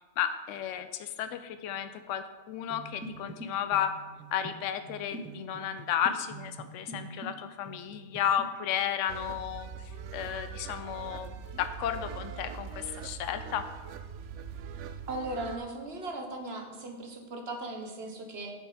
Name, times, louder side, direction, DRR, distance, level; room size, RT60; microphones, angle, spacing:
voice 1, 0.2-3.9 4.3-9.7 10.1-13.7, left 9 dB, 85° left, 10 dB, 0.9 m, -33 dB
sound 1, 2.7-7.4 7.6-8.5, right 2 dB, 10° right, 0.7 m, -44 dB
sound 2, 9.1-15.6, right 6 dB, 75° right, 0.9 m, -42 dB
voice 2, 15.1-18.5, right 2 dB, 55° right, 4 dB, 1.4 m, -38 dB
7.6 x 7.4 x 5.0 m, 1.2 s
omnidirectional pair, 1.3 m